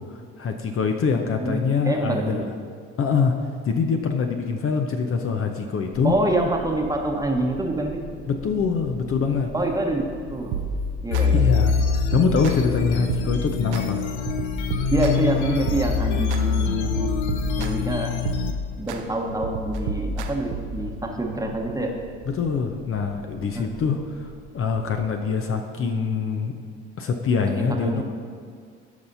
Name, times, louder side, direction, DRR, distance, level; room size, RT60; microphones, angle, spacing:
voice 1, 0.1-2.5 3.0-3.3 3.6-6.1 8.3-9.5 11.3-11.8 12.1-14.0 22.3-26.5 27.0-28.0, left 5 dB, 40° left, 4 dB, 0.8 m, -24 dB
voice 2, 1.4-2.4 6.0-8.1 9.5-10.6 11.0-11.5 14.9-17.1 17.6-18.2 18.8-22.0 23.5-24.0 27.6-28.0, right 1 dB, 10° right, 1 dB, 1.2 m, -26 dB
sound 1, 5.9-25.1, right 2 dB, 60° left, 1.8 m, -43 dB
sound 2, 10.5-11.2 11.7-12.8 13.1-13.8 14.3-16.4 16.8-17.9 18.3-19.0 19.4-20.8, right 2 dB, 70° right, 0.8 m, -30 dB
sound 3, 11.1-18.5, left 7 dB, 80° left, 0.7 m, -25 dB
15.5 x 5.5 x 2.7 m, 2.1 s
hypercardioid pair, 60°, 34 cm